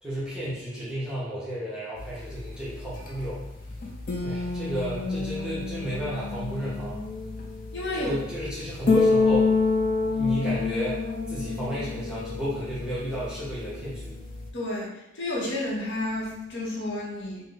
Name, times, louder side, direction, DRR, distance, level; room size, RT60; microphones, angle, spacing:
voice 1, 0.0-3.4 4.2-7.0 7.9-9.5 10.0-14.2, equal, 5° right, -10 dB, 0.7 m, -32 dB
sound 1, 2.0-14.5, left 4 dB, 40° left, 0.4 m, -28 dB
voice 2, 7.7-8.2 14.5-14.9 15.1-17.4, left 1 dB, 55° left, -4 dB, 0.8 m, -30 dB
3.0 x 2.1 x 3.7 m, 0.89 s
head